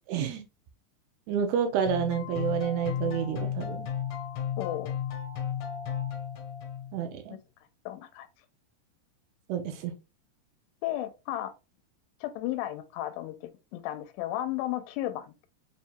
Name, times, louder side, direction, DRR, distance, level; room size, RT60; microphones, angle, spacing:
voice 1, 0.1-0.4 1.3-3.8 6.9-7.4 9.5-9.9, right 8 dB, 80° right, 2.4 m, -29 dB
sound 1, 1.9-7.0, left 9 dB, 65° left, 2.1 m, -34 dB
voice 2, 4.6-4.9 7.3-7.4 7.9-8.3 10.8-11.5 12.2-15.5, left 13 dB, 85° left, 2.6 m, -34 dB
7.0 x 2.7 x 2.2 m
omnidirectional pair, 4.9 m